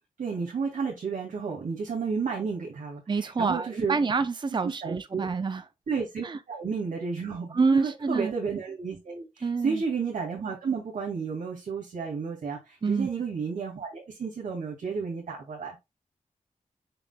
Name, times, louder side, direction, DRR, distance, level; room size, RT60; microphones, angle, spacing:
voice 1, 0.2-4.0 4.6-5.3 5.9-15.8, right 5 dB, 85° right, 2.2 m, -32 dB
voice 2, 3.1-5.6 6.2-6.4 7.5-8.3 9.4-9.8 12.8-13.1, right 4 dB, 35° right, 0.6 m, -27 dB
6.7 x 6.1 x 2.3 m
wide cardioid pair, 85°, 13 cm